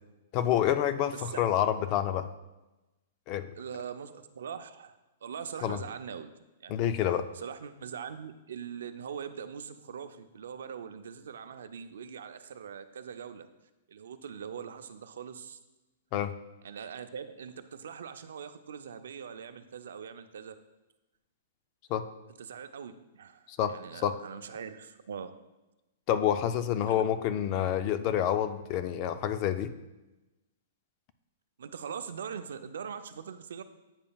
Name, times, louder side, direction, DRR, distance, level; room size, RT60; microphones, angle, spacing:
voice 1, 0.3-2.3 3.3-3.5 5.6-5.8 6.7-7.3 16.1-16.3 21.9-22.0 23.5-23.7 24.0-24.1 26.1-29.7, left 10 dB, 30° left, 11 dB, 0.3 m, -28 dB
voice 2, 3.6-6.3 6.6-6.8 7.3-13.5 13.9-15.6 16.6-20.5 22.4-25.4 26.9-27.0 31.6-33.6, right 7 dB, 80° right, 10 dB, 0.5 m, -42 dB
8.7 x 5.3 x 2.3 m, 1.0 s
hypercardioid pair, 165°, 0 cm